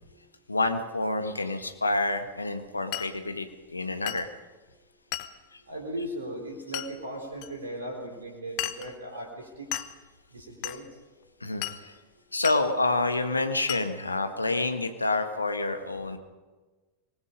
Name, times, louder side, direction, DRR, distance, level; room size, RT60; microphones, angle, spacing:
voice 1, 0.5-4.3 11.4-11.9 12.3-16.2, left 2 dB, 80° left, 8 dB, 1.6 m, -28 dB
Glass, 2.9-3.2 4.1-4.3 5.1-5.4 6.7-6.9 7.4-7.5 8.6-8.9 9.7-10.0 10.6-10.8 11.6-11.8 12.4-12.6 13.7-13.9, left 16 dB, 45° left, 1.1 m, -34 dB
voice 2, 5.7-9.7 10.3-10.9, right 1 dB, 70° right, 1 dB, 3.8 m, -37 dB
25.0 x 19.5 x 5.3 m, 1.3 s
figure-of-eight pair, 90°, 0 cm